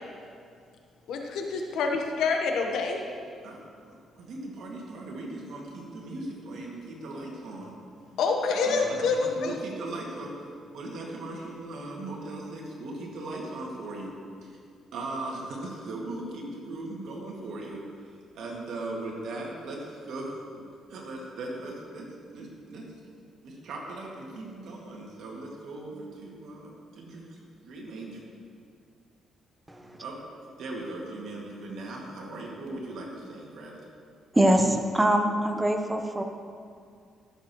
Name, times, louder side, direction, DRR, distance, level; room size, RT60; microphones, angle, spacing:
voice 1, 1.1-3.0 8.2-9.5, left 4 dB, 80° left, 3 dB, 1.1 m, -27 dB
voice 2, 3.4-7.7 8.5-10.4 10.7-14.1 14.4-14.5 14.9-17.8 18.3-22.9 23.4-28.2 29.8-30.2 30.6-33.8, right 2 dB, 75° right, -2 dB, 2.0 m, -38 dB
voice 3, 29.7-30.0 34.3-36.2, right 1 dB, 10° right, 5 dB, 0.8 m, -23 dB
14.5 x 7.3 x 3.1 m, 2.3 s
cardioid pair, 90°, 0 cm